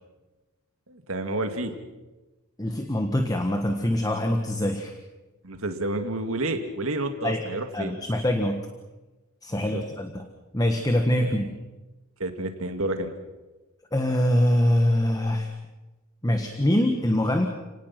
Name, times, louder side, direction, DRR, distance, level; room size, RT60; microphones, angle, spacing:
voice 1, 0.9-1.8 5.4-7.9 9.6-9.8 11.2-11.3 12.2-13.1, right 2 dB, 70° right, 7 dB, 2.2 m, -30 dB
voice 2, 2.6-4.9 7.2-7.4 7.7-8.7 9.4-10.2 10.5-11.5 13.9-15.5 16.2-17.5, left 1 dB, 15° left, 5 dB, 1.4 m, -24 dB
30.0 x 18.5 x 6.0 m, 1.1 s
head